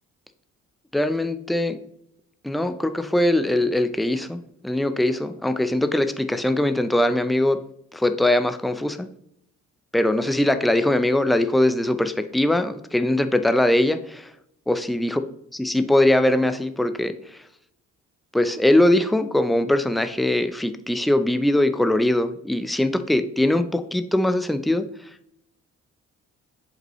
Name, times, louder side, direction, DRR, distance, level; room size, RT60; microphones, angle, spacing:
voice 1, 0.9-1.8 2.4-7.6 7.9-9.1 9.9-14.3 14.7-15.2 15.5-17.2 18.3-24.9, left 1 dB, ahead, 10 dB, 0.4 m, -21 dB
7.5 x 5.4 x 3.0 m, 0.76 s
cardioid pair, 90°, 30 cm